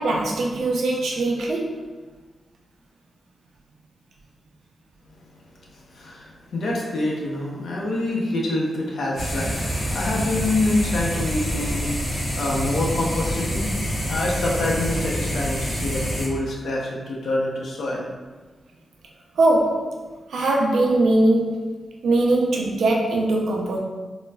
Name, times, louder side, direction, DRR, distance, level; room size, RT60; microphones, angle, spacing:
voice 1, 0.0-1.8 19.4-19.9 20.3-21.6 22.0-23.8, right 2 dB, 90° right, -1 dB, 0.5 m, -21 dB
voice 2, 5.7-13.7 14.1-18.1, left 2 dB, 75° left, -2 dB, 0.6 m, -26 dB
sound 1, 9.2-16.3, equal, 40° left, 1.5 m, -27 dB
3.9 x 2.1 x 2.3 m, 1.3 s
cardioid pair, 95°, 0 cm